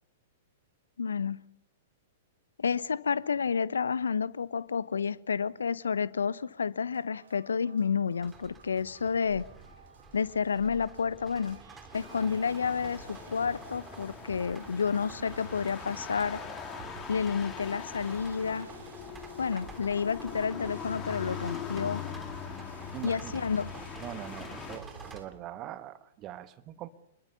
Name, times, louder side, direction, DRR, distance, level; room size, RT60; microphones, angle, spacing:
voice 1, 1.0-1.4 2.6-9.4 10.1-11.6 11.9-16.4 17.1-18.7 19.4-22.0 23.0-23.7, left 6 dB, 75° left, 0.8 m, -30 dB
sound 1, 6.9-25.3, right 6 dB, 65° right, 2.6 m, -52 dB
sound 2, 8.2-25.2, right 4 dB, 15° right, 3.3 m, -50 dB
sound 3, 11.9-24.8, left 8 dB, 25° left, 3.4 m, -42 dB
voice 2, 22.9-23.4 24.0-26.9, right 12 dB, 30° right, 1.6 m, -42 dB
26.5 x 22.0 x 7.0 m
figure-of-eight pair, 105°, 0 cm